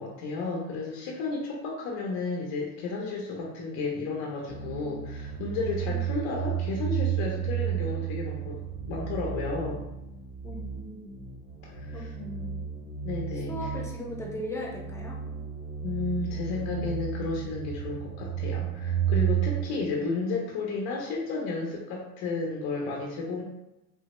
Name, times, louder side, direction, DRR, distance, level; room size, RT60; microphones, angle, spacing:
voice 1, 0.0-8.6 8.9-9.9 11.6-12.1 13.0-13.5 15.8-23.4, left 3 dB, 80° left, -2 dB, 0.7 m, -32 dB
sound 1, 4.5-19.6, right 9 dB, 50° right, 0.8 m, -32 dB
voice 2, 10.4-11.1 11.9-12.6 13.5-15.2 19.7-20.0, left 1 dB, 10° left, -2 dB, 0.4 m, -38 dB
3.3 x 2.1 x 2.9 m, 0.93 s
cardioid pair, 140°, 35 cm